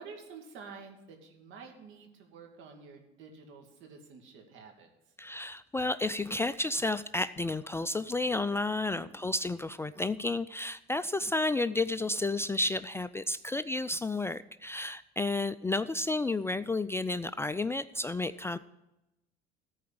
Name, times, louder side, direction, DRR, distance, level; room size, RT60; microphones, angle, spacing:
voice 1, 0.0-4.9 8.7-9.1, right 5 dB, 70° right, 3 dB, 2.5 m, -50 dB
voice 2, 5.2-18.6, left 2 dB, 10° left, 13 dB, 0.3 m, -31 dB
14.0 x 4.8 x 8.6 m, 0.94 s
supercardioid pair, 95°, 21 cm